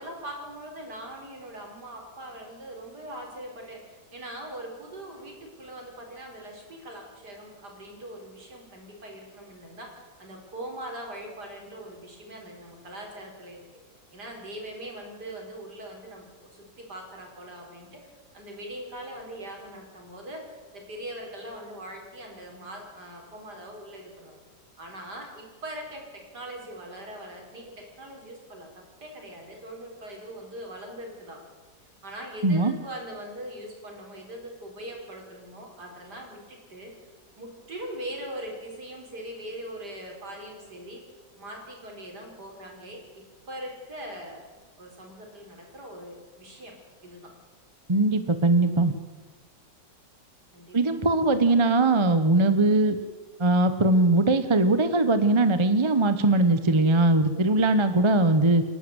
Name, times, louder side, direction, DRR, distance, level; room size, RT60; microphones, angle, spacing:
voice 1, 0.0-13.7 14.1-18.0 18.3-24.4 24.8-28.7 29.0-31.4 32.0-36.9 37.4-41.0 41.4-44.4 44.8-46.7 47.0-47.3 50.5-51.0, right 1 dB, 65° right, 1 dB, 5.1 m, -41 dB
voice 2, 47.9-48.9 50.7-53.0 53.4-58.6, right 2 dB, 20° right, 11 dB, 0.9 m, -21 dB
28.5 x 11.5 x 8.1 m, 1.3 s
omnidirectional pair, 1.9 m